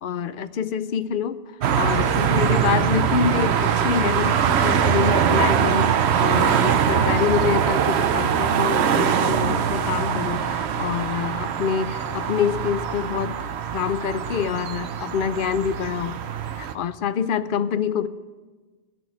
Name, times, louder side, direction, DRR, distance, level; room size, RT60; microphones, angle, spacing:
voice 1, 0.0-13.5 13.7-16.2 16.6-18.1, left 8 dB, 60° left, 14 dB, 0.6 m, -26 dB
sound 1, 1.6-16.7, right 8 dB, 70° right, 0.9 m, -22 dB
14.0 x 6.1 x 9.5 m, 1.3 s
omnidirectional pair, 1.2 m